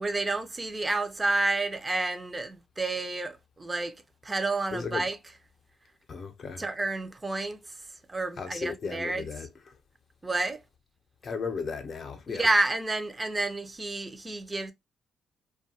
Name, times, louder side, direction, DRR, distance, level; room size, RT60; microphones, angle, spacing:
voice 1, 0.0-3.9 4.2-5.2 6.6-7.6 8.1-9.2 10.2-10.6 12.3-14.7, right 2 dB, 20° right, 0.5 m, -29 dB
voice 2, 4.7-5.1 6.1-6.6 8.4-9.5 11.2-12.5, left 5 dB, 50° left, 0.6 m, -35 dB
2.6 x 2.3 x 2.7 m
cardioid pair, 90°, 0 cm